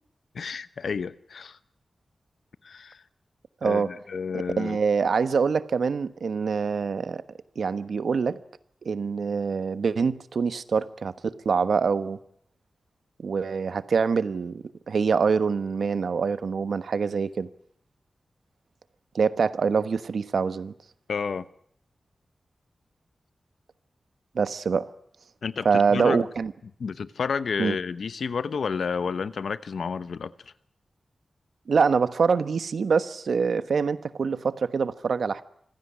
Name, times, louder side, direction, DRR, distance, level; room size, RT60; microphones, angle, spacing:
voice 1, 0.3-1.6 2.6-3.0 3.6-4.8 21.1-21.5 25.4-26.3 26.8-30.3, left 5 dB, 75° left, 0.9 m, -30 dB
voice 2, 4.6-7.2 7.6-8.4 8.8-12.2 13.2-17.5 19.1-20.7 24.3-24.9 25.6-26.5 27.6-27.7 31.7-35.4, right 5 dB, 75° right, 1.2 m, -25 dB
25.5 x 16.5 x 9.8 m
wide cardioid pair, 140°, 0 cm